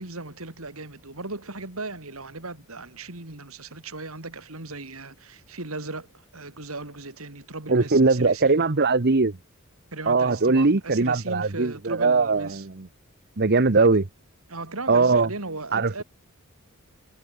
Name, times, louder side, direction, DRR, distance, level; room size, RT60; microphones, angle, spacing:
voice 1, 0.0-8.6 9.9-12.7 13.7-13.9 14.5-16.0, right 3 dB, 80° right, 4.0 m, -37 dB
voice 2, 7.7-9.3 10.1-12.9 13.4-14.0 14.9-15.3 15.7-16.0, right 3 dB, 50° right, 1.1 m, -20 dB
head